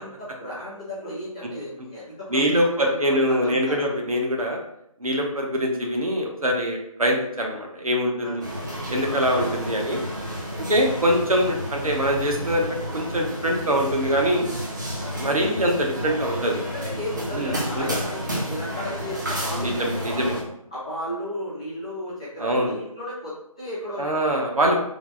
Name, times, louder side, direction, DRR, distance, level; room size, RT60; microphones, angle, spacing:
voice 1, 0.0-3.9 8.2-8.4 10.6-10.7 15.0-15.2 16.5-20.3 20.7-24.5, equal, 10° left, -11 dB, 0.6 m, -34 dB
voice 2, 2.3-4.6 5.0-8.5 8.9-10.0 10.6-14.5 15.2-16.6 17.3-17.9 19.6-20.3 22.4-22.8 24.0-24.7, equal, 75° right, 1 dB, 0.9 m, -23 dB
sound 1, 8.4-20.4, equal, 30° right, 0.6 m, -31 dB
3.3 x 2.1 x 3.8 m, 0.76 s
figure-of-eight pair, 160°, 19 cm